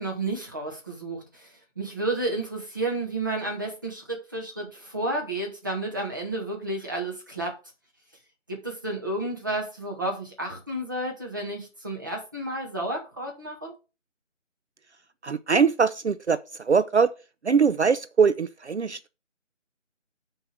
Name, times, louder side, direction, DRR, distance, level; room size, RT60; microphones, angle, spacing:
voice 1, 0.0-7.6 8.5-13.7, right 2 dB, 15° right, 1.1 m, -31 dB
voice 2, 15.2-17.1 17.4-19.1, right 5 dB, 65° right, 0.5 m, -22 dB
6.3 x 4.7 x 6.4 m
figure-of-eight pair, 160°, 38 cm